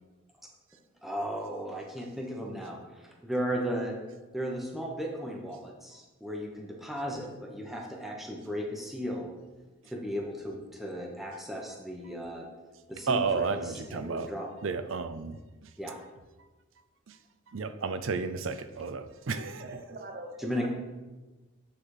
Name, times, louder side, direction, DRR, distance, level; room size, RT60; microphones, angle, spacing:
voice 1, 1.0-3.9 4.3-9.3 9.8-12.5 12.9-14.5 15.8-16.0 20.4-20.7, equal, ahead, -1 dB, 1.0 m, -35 dB
voice 2, 13.1-14.3 14.6-15.4 17.1-17.2 17.5-19.8, right 4 dB, 75° right, 10 dB, 0.5 m, -32 dB
voice 3, 19.6-20.7, right 1 dB, 50° right, 4 dB, 1.0 m, -43 dB
8.8 x 4.2 x 4.9 m, 1.2 s
head